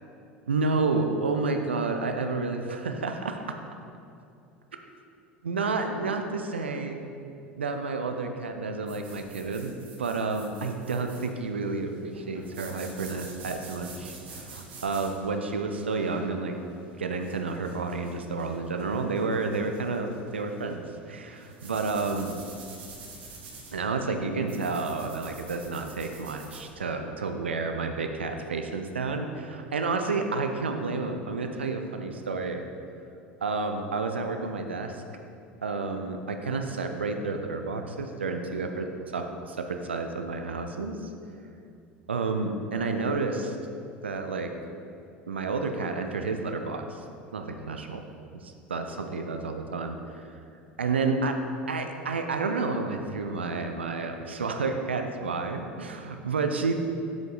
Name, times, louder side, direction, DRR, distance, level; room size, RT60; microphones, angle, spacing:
voice 1, 0.5-3.6 5.4-7.0 7.6-9.7 10.0-16.6 17.0-22.4 23.7-32.6 33.4-35.0 35.6-41.1 42.1-43.6 44.0-44.5 45.3-47.0 47.3-48.0 48.3-50.2 50.8-51.4 51.7-56.7, right 3 dB, 75° right, 5 dB, 0.5 m, -30 dB
sound 1, 8.9-26.7, right 3 dB, 60° right, 2.0 m, -48 dB
7.5 x 7.4 x 3.8 m, 2.5 s
figure-of-eight pair, 75°, 6 cm